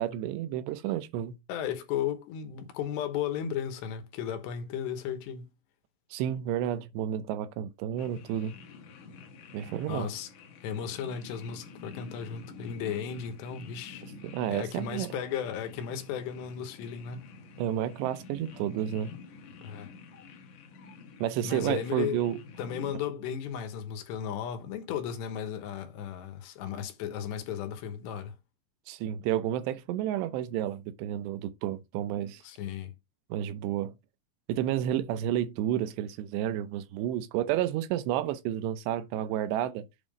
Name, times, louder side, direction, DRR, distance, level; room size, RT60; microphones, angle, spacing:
voice 1, 0.0-1.4 6.1-8.5 9.5-10.1 14.3-15.2 17.6-19.1 21.2-22.4 28.9-32.4 33.3-33.9 34.5-39.8, right 11 dB, 80° right, 2.9 m, -31 dB
voice 2, 1.5-5.5 9.9-10.3 10.6-14.0 14.5-17.3 19.6-19.9 21.4-22.2 22.6-28.3 32.4-32.9, left 8 dB, 80° left, 3.4 m, -35 dB
sound 1, 8.0-22.9, left 4 dB, 60° left, 2.2 m, -48 dB
8.1 x 3.7 x 5.2 m
omnidirectional pair, 4.9 m